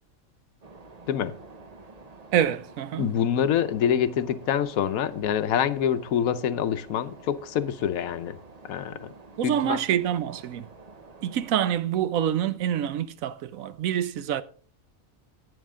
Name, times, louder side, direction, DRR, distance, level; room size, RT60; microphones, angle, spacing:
sound 1, 0.6-11.5, right 3 dB, 35° right, 0.9 m, -49 dB
voice 1, 2.3-3.1 9.4-10.7 11.2-14.4, right 10 dB, 80° right, 1.1 m, -26 dB
voice 2, 3.0-8.4 8.6-9.1 9.4-9.8, left 9 dB, 90° left, 1.1 m, -26 dB
11.0 x 8.9 x 3.6 m
omnidirectional pair, 1.4 m